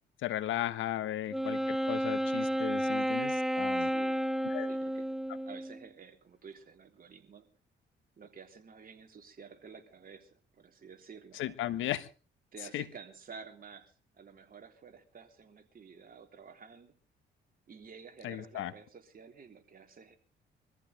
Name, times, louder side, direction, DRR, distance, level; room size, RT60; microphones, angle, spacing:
voice 1, 0.2-3.9 4.4-4.7 11.3-12.1 12.7-12.8 18.2-18.7, left 13 dB, 85° left, 13 dB, 1.3 m, -36 dB
Wind instrument woodwind instrument, 1.3-5.8, equal, ahead, 0.7 m, -31 dB
voice 2, 3.8-4.3 4.7-5.1 5.4-7.5 8.2-11.6 12.5-16.9 17.7-20.2, right 6 dB, 45° right, 5 dB, 3.3 m, -51 dB
24.0 x 14.5 x 3.3 m, 0.34 s
cardioid pair, 90°, 20 cm